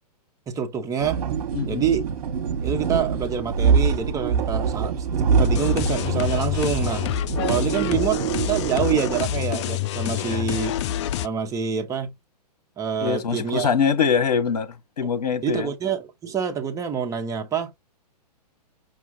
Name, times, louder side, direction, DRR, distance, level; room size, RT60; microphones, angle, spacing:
voice 1, 0.5-1.2 1.6-2.0 2.6-7.1 7.5-10.7 11.2-12.1 12.8-13.7 15.4-17.7, right 7 dB, 15° right, 0.9 m, -26 dB
sound 1, 1.0-9.2, right 6 dB, 60° right, 1.1 m, -25 dB
sound 2, 5.4-11.3, left 11 dB, 45° left, 0.4 m, -27 dB
voice 2, 10.1-10.5 13.0-15.7, left 6 dB, 70° left, 1.2 m, -24 dB
5.7 x 2.4 x 3.5 m
hypercardioid pair, 120°, 21 cm